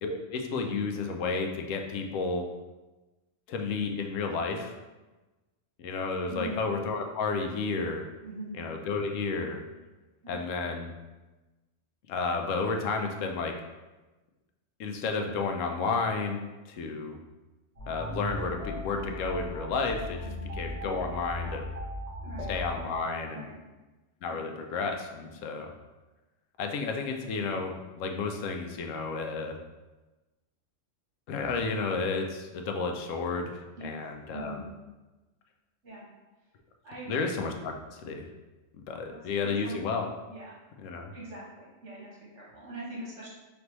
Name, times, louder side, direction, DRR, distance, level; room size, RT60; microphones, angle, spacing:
voice 1, 0.0-2.4 3.5-4.8 5.8-8.0 8.5-9.6 10.3-10.9 12.1-13.5 14.8-17.2 17.9-21.7 22.5-23.5 24.2-25.7 26.6-29.6 31.3-34.6 37.1-38.3 38.9-40.1 40.8-41.1, left 4 dB, 90° left, 4 dB, 1.0 m, -32 dB
voice 2, 8.2-8.5 10.2-10.5 20.2-20.5 22.2-22.5 23.3-23.6 24.3-24.5 25.2-25.5 33.8-33.9 34.3-34.6 35.8-36.1 36.8-37.2 39.4-39.8 40.3-40.6 41.1-43.3, right 2 dB, 70° right, -7 dB, 1.8 m, -42 dB
sound 1, 17.8-22.8, left 1 dB, 30° right, 1.5 m, -37 dB
4.0 x 3.4 x 3.0 m, 1.1 s
omnidirectional pair, 1.3 m